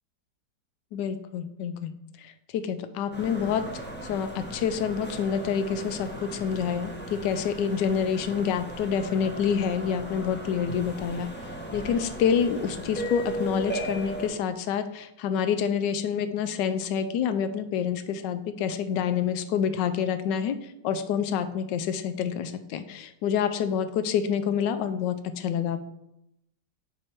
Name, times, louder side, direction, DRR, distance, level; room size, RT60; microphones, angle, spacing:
voice 1, 0.9-1.9 2.2-11.3 11.7-25.8, left 7 dB, 80° left, 11 dB, 1.2 m, -28 dB
sound 1, 3.1-14.3, right 1 dB, 10° left, 0.6 m, -37 dB
6.2 x 4.7 x 4.3 m, 0.84 s
omnidirectional pair, 1.9 m